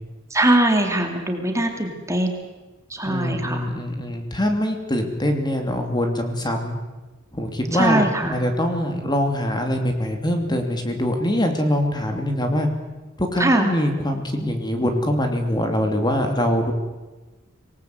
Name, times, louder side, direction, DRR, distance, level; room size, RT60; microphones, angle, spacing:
voice 1, 0.3-2.4 2.9-3.7 7.7-8.3 13.4-13.7, right 1 dB, 15° right, 4 dB, 2.6 m, -21 dB
voice 2, 3.0-6.7 7.3-8.0 8.3-12.7 13.2-16.7, equal, 20° left, 5 dB, 2.9 m, -23 dB
25.5 x 19.0 x 8.0 m, 1.2 s
head